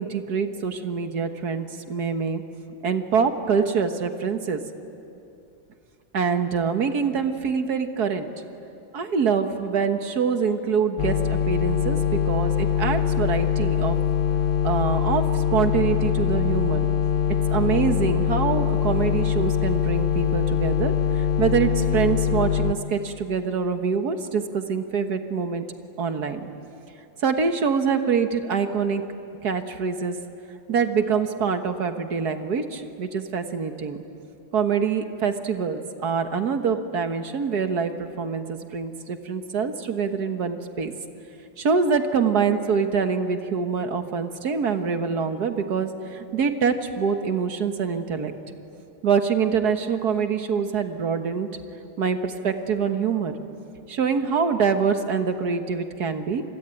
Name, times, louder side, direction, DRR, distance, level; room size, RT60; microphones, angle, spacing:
voice 1, 0.0-2.4 2.8-4.6 6.1-8.3 8.9-14.0 14.6-16.9 17.5-25.6 26.0-26.5 27.2-29.0 29.4-30.2 30.7-34.0 34.5-40.9 41.6-48.3 49.0-51.5 52.0-53.3 53.9-56.4, right 6 dB, 55° right, 7 dB, 1.8 m, -25 dB
sound 1, 11.0-22.7, left 8 dB, 55° left, 0.5 m, -23 dB
28.0 x 21.5 x 9.1 m, 2.7 s
omnidirectional pair, 2.1 m